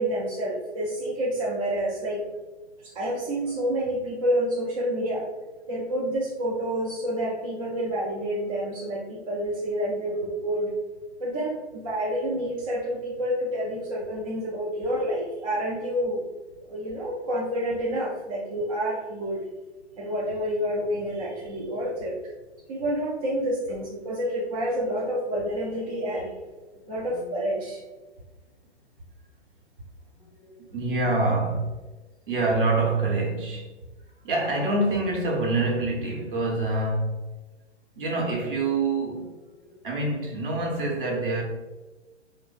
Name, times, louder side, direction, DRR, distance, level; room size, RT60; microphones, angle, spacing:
voice 1, 0.0-2.3 2.8-5.3 5.7-10.7 11.2-16.2 16.7-19.4 20.0-22.3 22.7-26.3 26.9-27.8, equal, 30° right, 0.5 m, -28 dB
voice 2, 30.2-31.9 32.3-33.7 34.2-37.2 38.0-39.4 39.7-41.4, right 2 dB, 50° right, 0.9 m, -26 dB
3.1 x 2.1 x 3.8 m
figure-of-eight pair, 120°, 35 cm